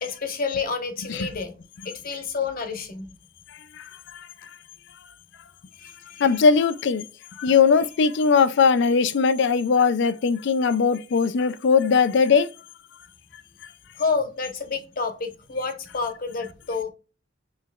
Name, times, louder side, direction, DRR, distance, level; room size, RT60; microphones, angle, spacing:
voice 1, 0.0-1.6 1.8-3.1 5.8-6.4 14.0-16.9, left 4 dB, 50° left, 1.0 m, -29 dB
voice 2, 6.2-7.0 7.4-12.5, left 5 dB, 65° left, 0.4 m, -19 dB
5.5 x 3.1 x 2.2 m
head